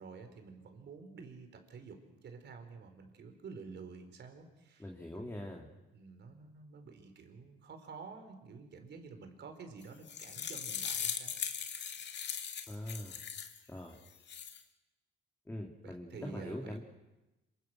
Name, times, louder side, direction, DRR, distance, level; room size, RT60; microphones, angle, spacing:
voice 1, 0.0-4.9 5.2-5.6 5.9-11.4 15.8-16.8, right 5 dB, 60° right, 6 dB, 4.6 m, -50 dB
voice 2, 4.8-5.7 12.7-13.2 13.7-14.0 15.5-16.8, left 1 dB, 10° left, 0 dB, 2.9 m, -42 dB
sound 1, 9.8-13.6 14.1-14.6, left 7 dB, 60° left, 2.3 m, -39 dB
26.5 x 25.0 x 6.3 m, 1.0 s
cardioid pair, 90°, 20 cm